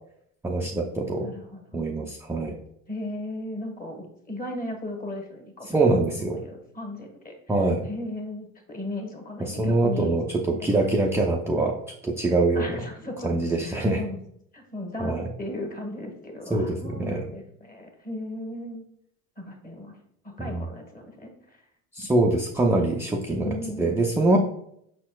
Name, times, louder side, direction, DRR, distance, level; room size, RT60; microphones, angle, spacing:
voice 1, 0.4-1.3 1.7-2.5 5.7-6.4 7.5-7.9 9.4-11.7 12.0-12.7 13.2-14.0 15.0-15.3 16.5-17.3 20.5-20.7 21.9-24.4, right 2 dB, 5° right, -1 dB, 0.4 m, -24 dB
voice 2, 1.2-2.0 2.9-10.1 10.5-11.0 12.5-14.2 14.5-18.8 19.4-20.0 20.2-21.6 23.4-24.0, left 1 dB, 20° left, 2 dB, 1.3 m, -37 dB
5.5 x 4.2 x 2.2 m, 0.72 s
hypercardioid pair, 75°, 42 cm